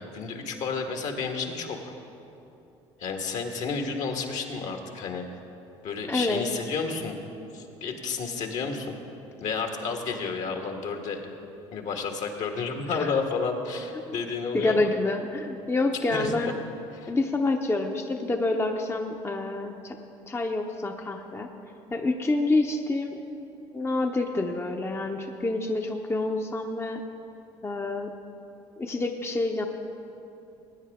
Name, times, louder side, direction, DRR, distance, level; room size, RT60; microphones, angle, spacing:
voice 1, 0.0-1.9 3.0-5.2 5.8-7.2 7.5-9.0 9.4-11.2 11.7-14.9 16.1-16.3 16.9-17.1, left 4 dB, 60° left, 3 dB, 1.6 m, -31 dB
voice 2, 6.1-6.4 12.9-13.1 14.1-14.2 14.5-16.5 17.1-20.0 20.3-21.5 21.9-23.2 23.7-27.0 27.6-28.1 28.8-29.7, left 2 dB, 20° left, 3 dB, 0.8 m, -27 dB
19.0 x 9.5 x 3.6 m, 2.8 s
hypercardioid pair, 65°, 14 cm